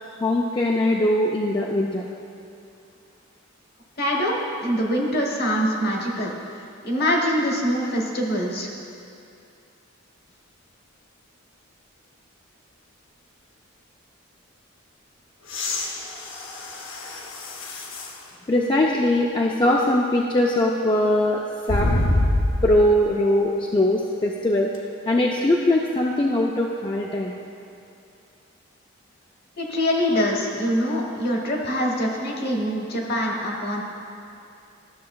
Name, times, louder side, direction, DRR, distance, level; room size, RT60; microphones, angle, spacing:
voice 1, 0.2-2.1 18.5-21.4 21.7-21.9 22.6-24.7 25.1-27.3, left 1 dB, 25° left, -2 dB, 0.3 m, -21 dB
voice 2, 4.0-6.3 6.8-8.7 29.6-33.8, equal, 50° left, 0 dB, 1.1 m, -24 dB
sound 1, 15.4-18.2 18.9-19.0 21.7-22.9 24.7-24.8, left 1 dB, 70° left, 0.8 m, -26 dB
12.5 x 6.5 x 2.3 m, 2.6 s
head